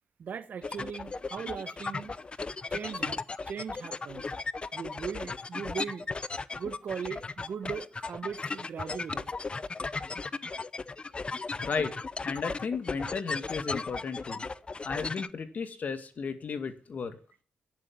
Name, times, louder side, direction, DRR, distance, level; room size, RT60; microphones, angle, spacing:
voice 1, 0.2-2.1 2.7-3.2 3.5-4.3 4.7-6.1 6.5-9.3, right 7 dB, 65° right, 1.6 m, -38 dB
sound 1, 0.6-15.3, left 3 dB, 35° left, 0.7 m, -36 dB
voice 2, 11.6-11.9 12.2-14.4 14.8-17.2, left 5 dB, 55° left, 2.2 m, -34 dB
11.0 x 10.5 x 7.8 m
cardioid pair, 70°, 3 cm